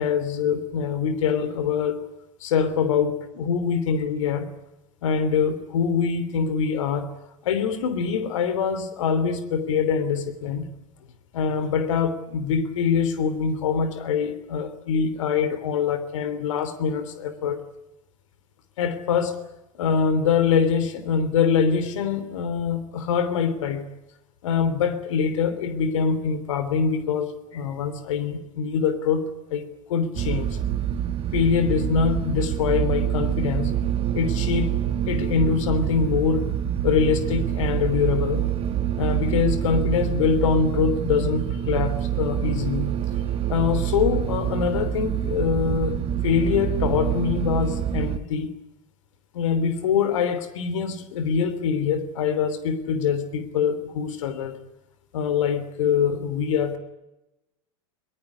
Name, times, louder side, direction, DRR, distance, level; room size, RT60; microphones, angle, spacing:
voice 1, 0.0-2.0 2.4-4.5 5.0-7.1 7.4-10.7 11.3-17.6 18.8-19.4 19.8-23.9 24.4-30.6 31.3-33.7 34.1-34.7 35.1-36.5 36.8-38.5 39.0-42.9 43.5-48.5 49.3-54.6 55.1-56.8, left 6 dB, 65° left, 12 dB, 3.3 m, -24 dB
sound 1, 30.1-48.2, right 10 dB, 35° right, 2.1 m, -26 dB
22.5 x 21.5 x 9.7 m, 0.94 s
figure-of-eight pair, 85°, 18 cm